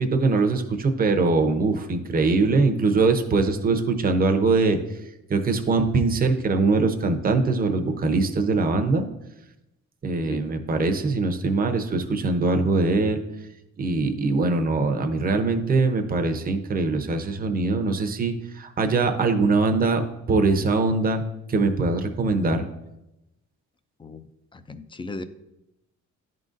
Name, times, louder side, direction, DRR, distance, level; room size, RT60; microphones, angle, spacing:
voice 1, 0.0-4.8 5.3-9.1 10.0-13.2 13.8-20.0 20.3-21.2 21.5-22.6, right 3 dB, 30° right, 6 dB, 0.7 m, -22 dB
voice 2, 24.5-25.2, left 3 dB, 15° left, 12 dB, 0.4 m, -36 dB
10.5 x 3.9 x 2.5 m, 0.91 s
cardioid pair, 90°, 30 cm